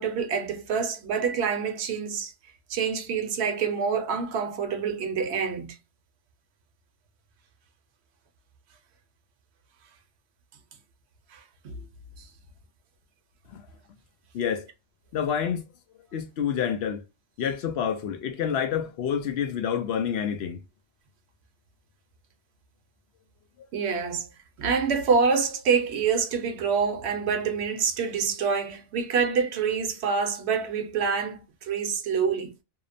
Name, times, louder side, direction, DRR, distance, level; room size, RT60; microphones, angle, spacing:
voice 1, 0.0-2.3 2.7-5.8 11.3-11.7 12.2-12.3 23.7-24.3 24.6-32.5, right 6 dB, 65° right, 0.8 m, -26 dB
voice 2, 15.1-15.6 16.1-17.0 17.4-20.6, left 8 dB, 65° left, 0.8 m, -28 dB
2.8 x 2.0 x 2.4 m
omnidirectional pair, 1.3 m